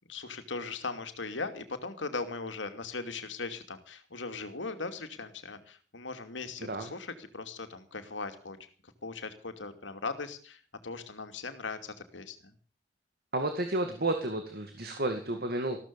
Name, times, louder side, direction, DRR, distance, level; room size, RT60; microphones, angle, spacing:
voice 1, 0.1-8.6 8.8-12.5, left 3 dB, 90° left, 8 dB, 2.7 m, -39 dB
voice 2, 13.3-15.8, right 2 dB, 55° right, 6 dB, 2.3 m, -31 dB
15.0 x 13.5 x 7.0 m, 0.41 s
head